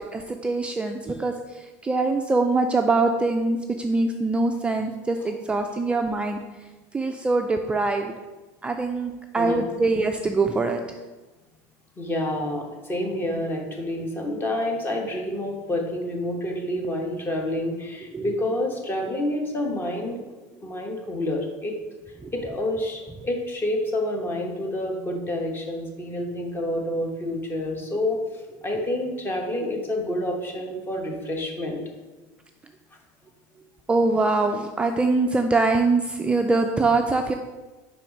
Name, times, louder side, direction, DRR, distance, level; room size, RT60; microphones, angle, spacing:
voice 1, 0.0-6.4 6.9-8.1 8.6-10.8 18.1-18.3 19.0-19.1 22.2-22.3 28.7-28.9 33.9-37.3, right 3 dB, 10° right, 4 dB, 0.3 m, -23 dB
voice 2, 9.3-9.8 12.0-20.2 20.6-21.8 22.3-28.2 28.6-31.8, left 1 dB, 25° left, 2 dB, 1.2 m, -28 dB
4.9 x 4.5 x 5.2 m, 1.2 s
supercardioid pair, 120°, 9 cm